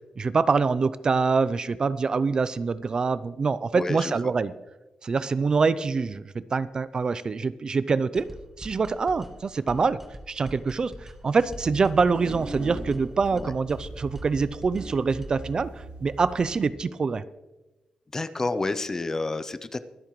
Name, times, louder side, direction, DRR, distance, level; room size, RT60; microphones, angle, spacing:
voice 1, 0.2-4.5 5.0-8.3 8.6-10.0 10.3-17.2, right 4 dB, 35° right, 16 dB, 0.4 m, -25 dB
voice 2, 3.7-4.3 13.3-13.5 18.1-19.8, left 3 dB, 20° left, 12 dB, 0.6 m, -30 dB
sound 1, 8.2-15.5, right 1 dB, 10° right, 1.1 m, -44 dB
sound 2, 11.3-16.7, right 2 dB, 70° right, 4.3 m, -39 dB
24.0 x 8.5 x 3.1 m, 1.1 s
wide cardioid pair, 145°, 2 cm